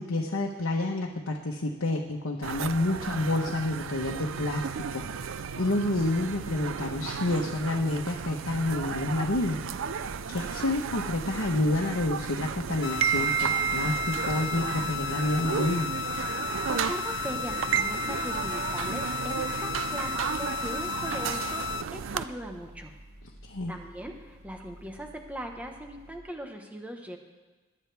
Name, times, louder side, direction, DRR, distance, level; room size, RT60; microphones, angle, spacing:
voice 1, 0.0-9.6 9.9-15.9 23.4-23.8, left 2 dB, 80° left, 0 dB, 1.1 m, -29 dB
sound 1, 2.4-22.2, right 7 dB, 70° right, 0.4 m, -33 dB
sound 2, 8.5-26.2, left 1 dB, 85° right, 2.3 m, -51 dB
sound 3, 12.8-21.8, left 8 dB, 55° left, 0.4 m, -34 dB
voice 2, 16.4-22.9 23.7-27.2, equal, 5° right, 3 dB, 1.2 m, -39 dB
20.5 x 9.8 x 3.5 m, 1.3 s
head